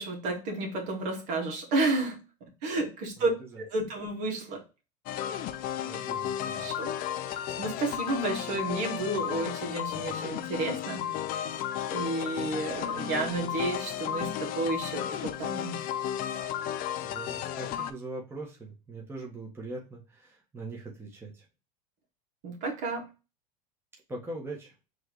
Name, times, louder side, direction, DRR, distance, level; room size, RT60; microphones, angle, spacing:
voice 1, 0.0-2.2 2.6-3.3 3.6-4.6 6.5-6.9 7.3-11.1 11.9-15.8 22.4-23.1, right 2 dB, 60° right, 0 dB, 2.0 m, -31 dB
sound 1, 5.1-17.9, left 10 dB, 45° left, 0.5 m, -34 dB
voice 2, 5.8-6.6 17.0-21.4 24.1-24.7, right 2 dB, 10° right, -1 dB, 1.3 m, -41 dB
4.7 x 3.2 x 3.1 m, 0.30 s
supercardioid pair, 110°, 20 cm